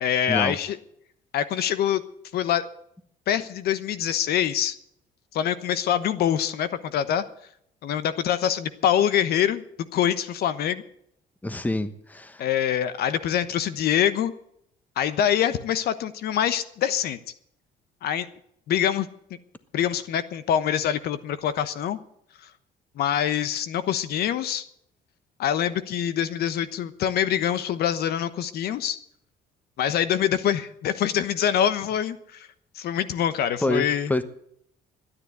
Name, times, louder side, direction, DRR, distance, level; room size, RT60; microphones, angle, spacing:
voice 1, 0.0-0.8 1.3-2.0 2.3-2.7 3.3-4.7 5.3-7.2 7.8-9.6 9.9-10.8 12.4-14.3 15.0-17.2 18.0-18.3 18.7-19.1 19.7-22.0 23.0-24.6 25.4-29.0 29.8-32.5 32.7-34.1, left 10 dB, 70° left, 1.1 m, -25 dB
voice 2, 11.4-12.5 33.6-34.2, left 2 dB, 10° left, 1.2 m, -27 dB
13.0 x 9.9 x 9.4 m
cardioid pair, 110°, 17 cm